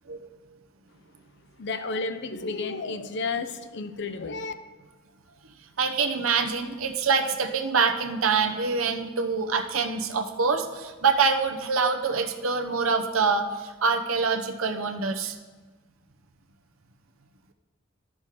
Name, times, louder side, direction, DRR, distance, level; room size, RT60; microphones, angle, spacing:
voice 1, 1.6-4.5, left 3 dB, 55° left, 10 dB, 0.6 m, -32 dB
voice 2, 5.8-15.4, right 5 dB, 85° right, 4 dB, 0.8 m, -25 dB
12.0 x 6.2 x 4.9 m, 1.3 s
head